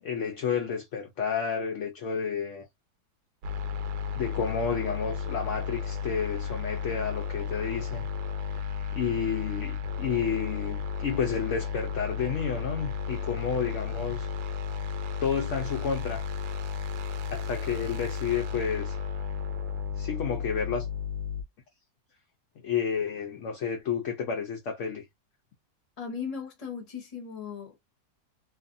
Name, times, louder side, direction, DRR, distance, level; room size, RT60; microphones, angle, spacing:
voice 1, 0.0-2.7 4.1-8.0 8.9-14.3 15.2-16.2 17.3-19.0 20.0-20.9 22.6-25.0, left 6 dB, 70° left, 0.7 m, -31 dB
sound 1, 3.4-21.4, left 6 dB, 75° right, 1.1 m, -33 dB
voice 2, 26.0-27.8, left 6 dB, 30° left, 0.8 m, -37 dB
2.6 x 2.5 x 2.5 m
omnidirectional pair, 1.8 m